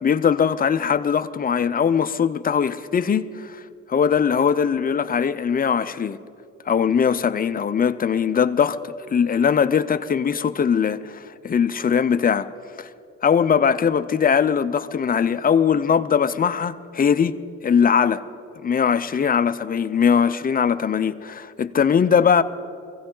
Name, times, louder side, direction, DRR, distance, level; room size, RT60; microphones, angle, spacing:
voice 1, 0.0-3.6 3.9-6.2 6.7-12.5 12.8-12.9 13.2-18.2 18.6-22.4, left 7 dB, 30° left, 0.6 m, -20 dB
23.0 x 16.0 x 3.8 m
cardioid pair, 90°, 30 cm